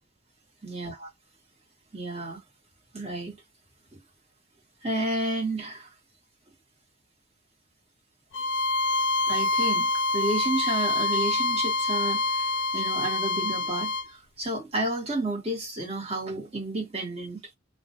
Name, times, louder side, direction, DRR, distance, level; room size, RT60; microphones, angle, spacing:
voice 1, 0.6-1.1 1.9-2.4 2.9-3.4 4.8-5.9 9.2-9.9 10.1-17.4, right 2 dB, 30° right, 1.1 m, -31 dB
Bowed string instrument, 8.3-14.1, left 2 dB, 70° left, 0.4 m, -26 dB
2.3 x 2.1 x 2.8 m
head